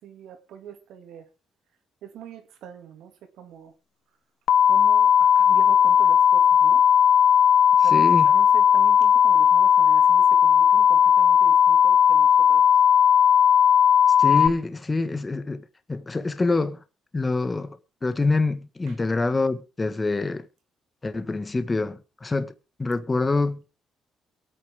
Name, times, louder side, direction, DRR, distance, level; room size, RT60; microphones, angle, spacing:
voice 1, 0.0-1.3 2.0-3.7 4.7-6.8 7.8-12.7 18.9-19.0, right 9 dB, 85° right, 2.7 m, -43 dB
sound 1, 4.5-14.5, left 8 dB, 70° left, 0.9 m, -17 dB
voice 2, 7.8-8.3 14.2-16.8 17.1-20.5 21.0-22.5 22.8-23.6, left 3 dB, 25° left, 1.6 m, -26 dB
23.0 x 8.8 x 3.7 m
cardioid pair, 90°, 0 cm